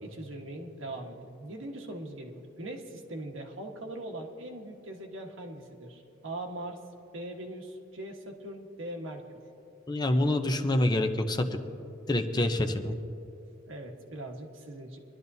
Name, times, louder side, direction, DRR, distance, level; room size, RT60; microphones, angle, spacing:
voice 1, 0.0-6.8 7.1-9.2 13.7-15.0, right 1 dB, 90° right, 1 dB, 1.4 m, -41 dB
voice 2, 9.9-11.6 12.1-13.0, left 1 dB, 20° left, 6 dB, 0.7 m, -26 dB
23.0 x 12.0 x 2.7 m, 2.7 s
head